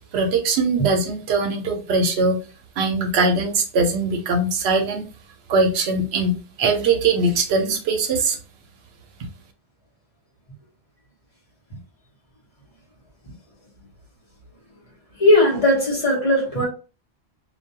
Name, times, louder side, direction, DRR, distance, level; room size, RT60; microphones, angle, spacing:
voice 1, 0.1-2.4 2.8-5.1 5.5-8.4, right 3 dB, 75° right, 0.8 m, -21 dB
voice 2, 15.2-16.6, left 1 dB, 35° left, 0.9 m, -17 dB
2.2 x 2.2 x 2.7 m
omnidirectional pair, 1.1 m